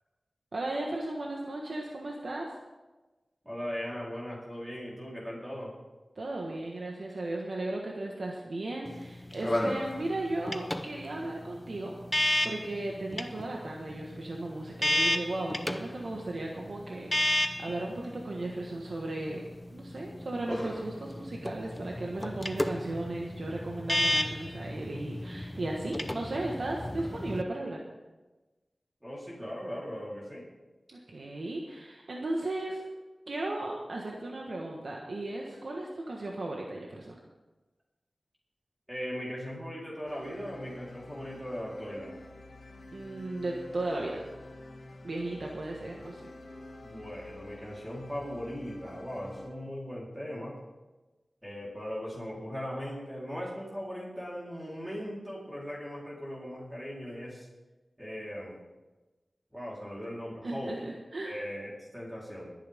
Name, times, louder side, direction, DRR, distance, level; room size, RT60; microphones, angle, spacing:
voice 1, 0.5-2.5 6.1-11.9 12.4-19.4 19.7-27.8 30.9-32.8 33.3-37.2 42.9-44.2 45.0-46.3 60.4-61.4, right 2 dB, 70° right, -1 dB, 1.5 m, -36 dB
voice 2, 3.4-5.7 29.0-30.4 38.9-42.1 46.8-50.6 51.4-57.5 58.0-58.6 59.5-60.7 61.2-62.5, equal, 10° right, -5 dB, 3.9 m, -39 dB
sound 1, 8.8-27.4, left 1 dB, 15° left, 0.7 m, -33 dB
sound 2, 40.1-49.5, left 2 dB, 80° left, 2.2 m, -49 dB
22.0 x 9.2 x 3.7 m, 1.1 s
wide cardioid pair, 70°, 0 cm